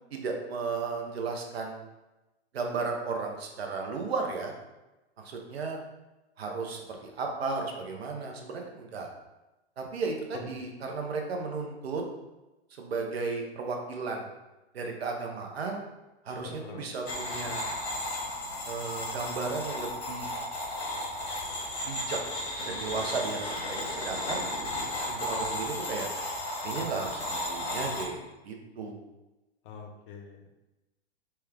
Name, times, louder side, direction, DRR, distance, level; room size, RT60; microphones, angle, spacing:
voice 1, 0.1-1.8 2.5-4.5 5.2-5.8 6.4-9.1 9.8-12.0 12.7-14.3 14.7-15.8 16.2-17.6 18.7-20.3 21.8-22.2 22.7-24.4 25.1-26.1 26.6-29.0, right 4 dB, 70° right, 2 dB, 0.8 m, -34 dB
voice 2, 10.3-10.7 16.4-16.9 29.6-30.5, left 4 dB, 50° left, 3 dB, 0.7 m, -43 dB
sound 1, 17.1-28.0, left 1 dB, 85° left, 1.2 m, -34 dB
4.4 x 2.3 x 3.4 m, 1.0 s
figure-of-eight pair, 105°, 33 cm